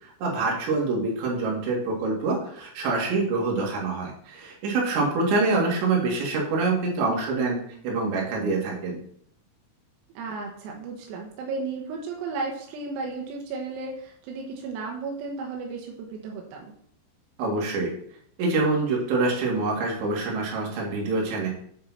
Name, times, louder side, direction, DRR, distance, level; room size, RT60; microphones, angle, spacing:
voice 1, 0.0-7.6 7.8-9.0 17.4-17.9 18.4-21.5, right 3 dB, 65° right, -2 dB, 4.3 m, -25 dB
voice 2, 10.2-16.7, right 4 dB, 85° right, 0 dB, 4.0 m, -34 dB
8.7 x 7.3 x 4.3 m, 0.65 s
omnidirectional pair, 6.0 m